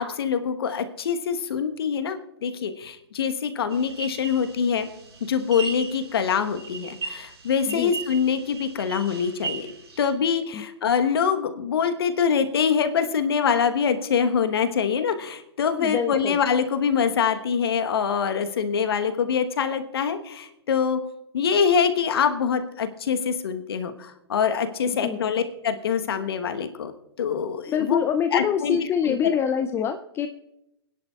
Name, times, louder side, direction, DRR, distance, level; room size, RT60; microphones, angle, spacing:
voice 1, 0.0-4.9 5.3-9.7 10.0-21.0 21.3-26.9 27.2-28.0 28.3-28.8 29.0-29.2, left 7 dB, 65° left, 8 dB, 1.2 m, -24 dB
sound 1, 3.7-10.1, right 5 dB, 70° right, 4.8 m, -38 dB
voice 2, 15.8-16.4 25.0-25.2 27.7-30.3, left 8 dB, 20° left, 8 dB, 0.4 m, -25 dB
24.0 x 10.5 x 2.4 m, 0.85 s
figure-of-eight pair, 115°, 14 cm